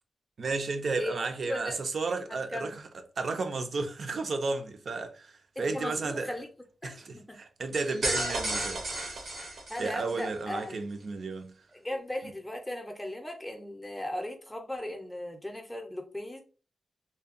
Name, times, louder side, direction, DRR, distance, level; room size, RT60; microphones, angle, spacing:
voice 1, 0.4-2.9 3.2-6.4 6.8-9.4 9.8-11.6, right 3 dB, 65° right, 0.4 m, -33 dB
voice 2, 1.5-1.8 2.3-2.7 5.6-6.5 6.8-7.4 8.2-8.3 9.3-10.8 11.7-16.4, left 1 dB, 10° left, 0.5 m, -37 dB
sound 1, 7.7-10.3, right 1 dB, 90° right, 0.8 m, -33 dB
2.7 x 2.2 x 2.4 m
wide cardioid pair, 100°, 0 cm